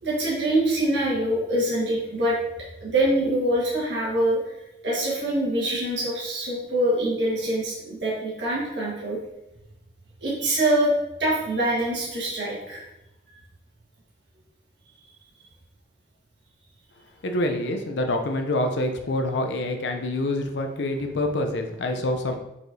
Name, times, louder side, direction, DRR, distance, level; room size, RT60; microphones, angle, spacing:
voice 1, 0.0-2.4 2.8-4.4 4.8-9.2 10.2-10.9 11.2-12.8, right 1 dB, 75° right, -6 dB, 1.4 m, -24 dB
voice 2, 17.2-22.4, left 1 dB, 75° left, 4 dB, 0.5 m, -26 dB
4.8 x 4.2 x 2.6 m, 0.90 s
head